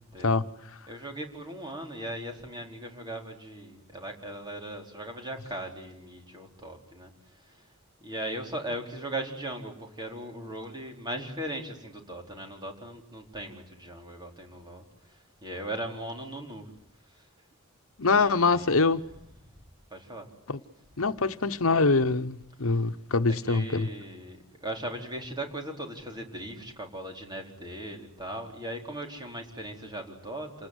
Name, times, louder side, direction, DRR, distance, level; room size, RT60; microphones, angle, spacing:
voice 1, 0.9-7.1 7.4-7.6 8.0-14.8 15.1-16.7 17.1-17.3 18.0-18.9 19.9-20.3 23.3-30.7, right 1 dB, 20° right, 4.4 m, -38 dB
voice 2, 18.0-19.0 20.5-20.6 21.0-23.9, left 3 dB, 80° left, 1.1 m, -24 dB
28.0 x 20.0 x 9.8 m
head